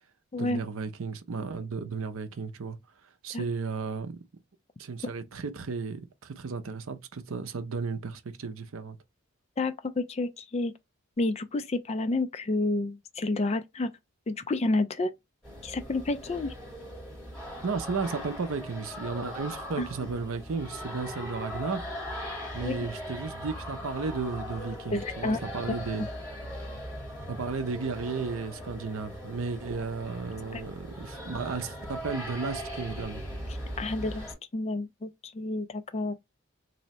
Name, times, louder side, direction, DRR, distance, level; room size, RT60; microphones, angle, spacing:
voice 1, 0.4-2.8 3.2-4.2 4.8-9.0 17.6-21.8 22.5-26.1 27.3-33.2, right 4 dB, 70° right, 0.6 m, -34 dB
voice 2, 9.6-10.7 11.2-13.9 14.3-15.1 15.6-16.5 19.8-19.9 22.6-22.8 24.9-25.4 25.7-25.8 30.5-30.6 33.8-34.3 34.5-36.2, left 2 dB, 30° left, 0.3 m, -29 dB
sound 1, 15.4-34.3, equal, 5° left, 2.3 m, -39 dB
3.1 x 2.7 x 4.2 m
head